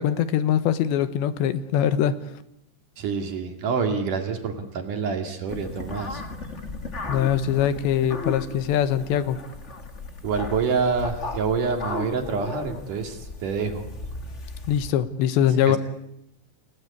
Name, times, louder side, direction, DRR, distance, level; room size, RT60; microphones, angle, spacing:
voice 1, 0.0-2.1 7.1-9.4 14.7-15.8, left 10 dB, 80° left, 12 dB, 3.3 m, -22 dB
voice 2, 3.0-6.2 10.2-13.9 15.7-15.8, right 5 dB, 50° right, 5 dB, 3.4 m, -27 dB
sound 1, 5.5-14.9, left 2 dB, 50° left, 0.8 m, -36 dB
29.0 x 19.0 x 8.5 m, 0.80 s
omnidirectional pair, 5.1 m